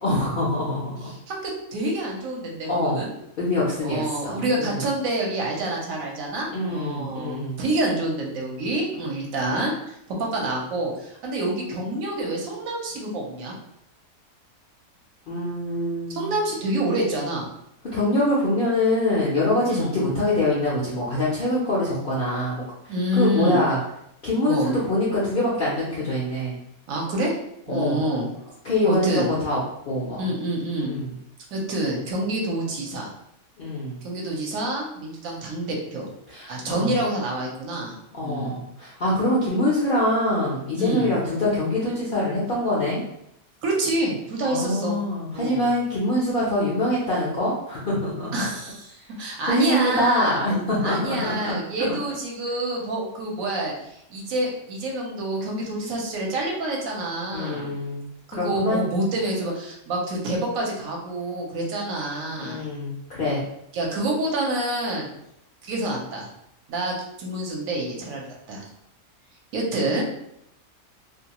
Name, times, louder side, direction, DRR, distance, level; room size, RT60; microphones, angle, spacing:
voice 1, 0.0-1.0 2.7-3.0 3.4-4.8 6.5-7.6 15.3-16.3 17.9-23.8 24.2-26.6 27.7-28.0 28.6-29.6 29.9-30.2 30.8-31.1 33.6-34.0 36.3-36.9 38.1-43.0 44.4-48.3 49.5-51.5 51.8-51.9 57.3-58.1 58.4-58.8 62.4-63.4, left 1 dB, 60° left, -6 dB, 0.5 m, -24 dB
voice 2, 1.1-3.1 3.8-13.5 16.1-17.5 19.6-19.9 22.9-23.6 24.5-24.7 26.9-27.3 27.7-28.3 28.8-29.3 30.2-30.9 31.5-33.1 34.0-36.1 36.5-37.9 38.2-38.6 40.7-41.1 43.6-45.0 45.3-45.7 48.3-50.4 50.8-57.7 58.3-62.6 63.7-65.1 65.6-66.3 66.7-68.6 69.5-70.0, right 1 dB, 70° right, -1 dB, 1.0 m, -27 dB
2.6 x 2.2 x 2.8 m, 0.77 s
omnidirectional pair, 1.6 m